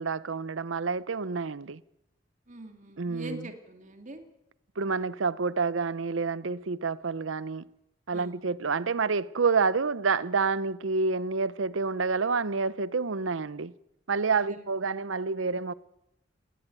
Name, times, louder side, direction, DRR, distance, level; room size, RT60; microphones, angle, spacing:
voice 1, 0.0-1.8 3.0-3.4 4.8-7.7 8.1-13.7 14.1-15.7, right 4 dB, 80° right, 0.7 m, -28 dB
voice 2, 2.5-4.3 8.1-8.5 14.4-14.7, right 1 dB, 40° right, 2.5 m, -44 dB
19.5 x 19.0 x 9.0 m
head